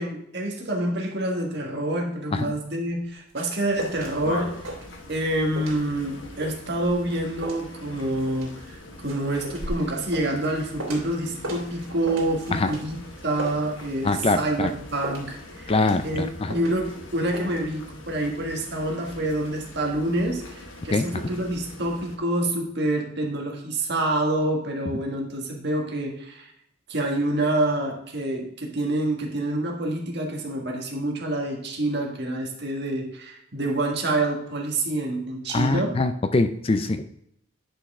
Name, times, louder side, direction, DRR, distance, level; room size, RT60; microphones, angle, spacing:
voice 1, 0.0-4.6 5.1-13.0 13.2-15.7 16.0-26.5 26.9-36.0, right 1 dB, 55° right, 1 dB, 1.7 m, -27 dB
sound 1, 2.9-4.2 4.4-5.3 5.6-11.2 11.4-14.2 14.5-17.0 17.3-17.5, right 1 dB, 90° right, 2.9 m, -37 dB
sound 2, 3.7-22.2, left 1 dB, 65° left, 1.4 m, -42 dB
voice 2, 14.0-14.7 15.7-16.5 20.9-21.0 35.5-37.0, left 3 dB, 30° left, 9 dB, 0.4 m, -23 dB
9.7 x 5.5 x 3.6 m, 0.75 s
head